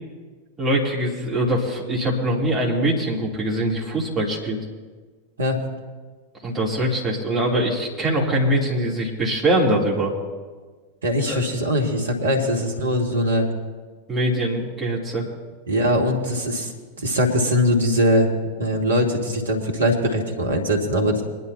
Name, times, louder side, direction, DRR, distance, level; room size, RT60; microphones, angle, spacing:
voice 1, 0.6-4.6 6.4-10.1 11.3-11.4 14.1-15.2, right 1 dB, 15° right, -4 dB, 3.1 m, -23 dB
voice 2, 11.0-13.5 15.7-16.7 17.0-18.3 18.6-21.2, equal, 70° right, 2 dB, 1.9 m, -21 dB
23.0 x 10.5 x 2.9 m, 1.4 s
figure-of-eight pair, 90°, 0 cm